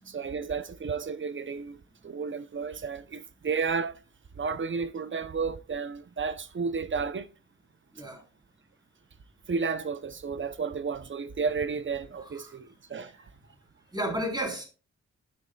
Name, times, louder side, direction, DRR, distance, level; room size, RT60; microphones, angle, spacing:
voice 1, 0.1-4.0 4.4-7.3 9.5-13.2, right 5 dB, 40° right, 0.7 m, -32 dB
voice 2, 12.2-12.5 13.9-14.6, equal, 15° right, 3.9 m, -33 dB
13.0 x 6.4 x 2.3 m
cardioid pair, 70°, 29 cm